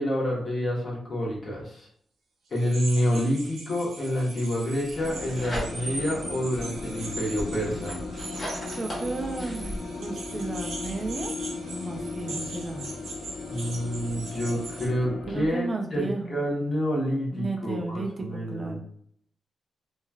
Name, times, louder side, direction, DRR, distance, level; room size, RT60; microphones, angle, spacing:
voice 1, 0.0-1.9 2.5-8.0 13.5-15.7 15.9-18.8, equal, 45° left, -3 dB, 1.0 m, -28 dB
sound 1, 2.5-14.9, right 2 dB, 85° right, 0.7 m, -40 dB
sound 2, 4.9-15.5, left 3 dB, 70° left, 0.4 m, -37 dB
sound 3, 4.9-6.1 6.5-9.8, equal, 25° left, 1.2 m, -38 dB
voice 2, 8.8-11.3 11.7-12.9 15.1-16.4 17.3-18.8, right 2 dB, 35° right, 3 dB, 0.4 m, -34 dB
3.0 x 2.3 x 2.3 m, 0.66 s
cardioid pair, 105°, 0 cm